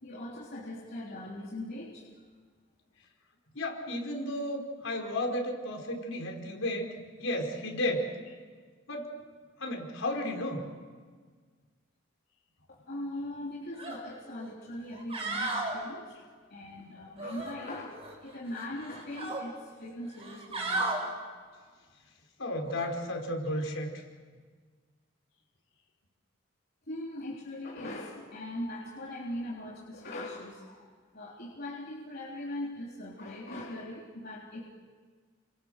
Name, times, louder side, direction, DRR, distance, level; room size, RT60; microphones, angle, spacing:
voice 1, 0.0-2.1 12.7-16.1 16.5-21.2 26.9-34.7, left 1 dB, 50° left, -4 dB, 3.5 m, -40 dB
voice 2, 3.5-6.9 7.2-8.1 8.9-9.1 9.6-10.6 22.4-23.9, left 1 dB, 80° left, 2 dB, 4.9 m, -33 dB
sound 1, 13.8-14.0 14.4-14.5 14.9-15.7 17.2-18.1 18.5-19.4 20.1-21.0 22.7-22.9, right 2 dB, 30° right, 5.6 m, -34 dB
29.5 x 26.0 x 6.6 m, 1.6 s
head